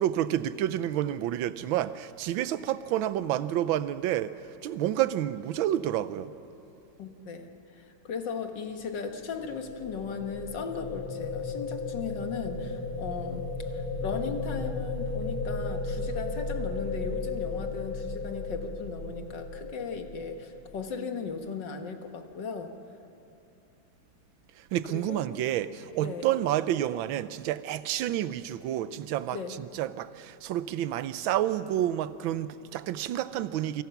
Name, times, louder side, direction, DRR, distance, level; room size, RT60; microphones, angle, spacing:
voice 1, 0.0-4.3 4.6-6.3 24.7-33.8, right 12 dB, 75° right, 14 dB, 1.5 m, -29 dB
voice 2, 7.0-22.7 24.9-25.2 26.0-26.3 29.3-29.6, left 5 dB, 60° left, 6 dB, 2.0 m, -37 dB
sound 1, 9.1-21.1, left 3 dB, 85° left, 2.3 m, -35 dB
28.0 x 25.5 x 5.9 m, 2.8 s
omnidirectional pair, 2.3 m